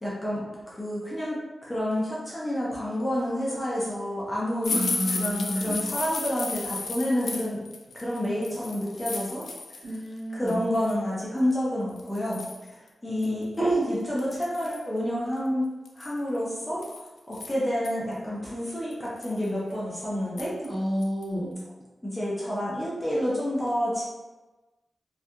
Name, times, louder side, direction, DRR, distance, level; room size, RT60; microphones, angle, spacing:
voice 1, 0.0-4.9 5.1-7.6 7.9-9.5 10.3-12.4 13.0-15.7 16.0-16.8 17.3-20.5 22.0-24.0, equal, 10° left, -7 dB, 0.6 m, -29 dB
sound 1, 4.6-10.0 10.3-10.9 11.5-11.6 12.0-12.7 13.2-13.3 13.6-13.7 14.2-14.9 15.9-17.9 18.4-18.5 18.9-19.5 20.4-20.7 21.0-21.2 21.6-21.7, left 3 dB, 70° left, 0.3 m, -34 dB
voice 2, 4.7-5.8 9.8-10.6 20.6-21.6, equal, 55° right, -9 dB, 1.3 m, -30 dB
2.7 x 2.3 x 2.2 m, 1.1 s
wide cardioid pair, 125°, 0 cm